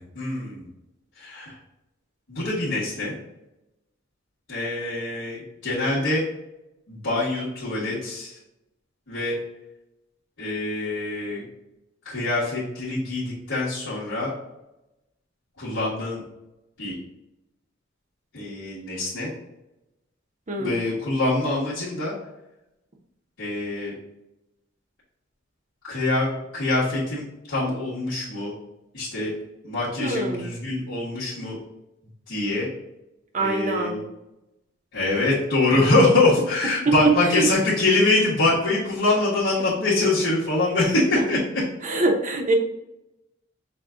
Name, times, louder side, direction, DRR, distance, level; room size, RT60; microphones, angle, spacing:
voice 1, 0.1-0.7 1.2-1.5 2.3-3.1 4.5-6.2 6.9-8.3 9.1-9.4 10.4-11.4 12.0-14.3 15.6-16.2 16.8-16.9 18.3-19.3 20.6-22.1 23.4-23.9 25.9-26.3 26.5-28.5 28.9-29.3 29.6-31.6 32.3-32.7 33.4-34.0 34.9-41.6, left 2 dB, 75° left, -11 dB, 1.5 m, -24 dB
voice 2, 20.5-20.8 30.0-30.5 33.3-34.0 35.7-35.8 37.0-37.5 41.2-41.3 41.8-42.5, right 2 dB, 40° right, 1 dB, 0.8 m, -24 dB
5.9 x 2.4 x 3.7 m, 0.93 s
head